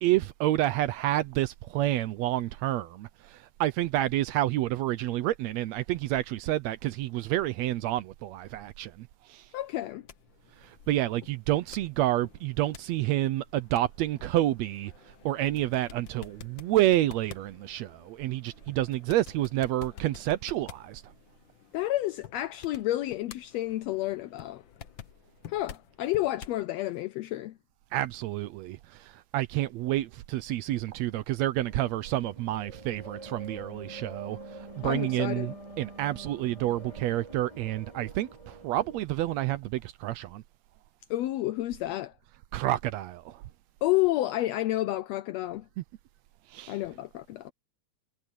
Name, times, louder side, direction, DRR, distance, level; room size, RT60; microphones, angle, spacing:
voice 1, 0.0-9.4 10.6-14.9 15.2-21.0 27.9-34.4 34.8-40.4 42.5-43.4 45.8-45.9 46.5-46.8, right 15 dB, 75° right, 1.8 m, -29 dB
voice 2, 9.5-10.1 21.7-24.6 25.5-27.5 34.8-35.5 41.1-42.1 43.8-45.6 46.7-47.5, left 16 dB, 75° left, 1.6 m, -30 dB
sound 1, 9.7-26.7, left 9 dB, 55° left, 1.5 m, -50 dB
sound 2, 31.7-39.0, right 2 dB, 10° right, 4.8 m, -46 dB
omnidirectional pair, 3.4 m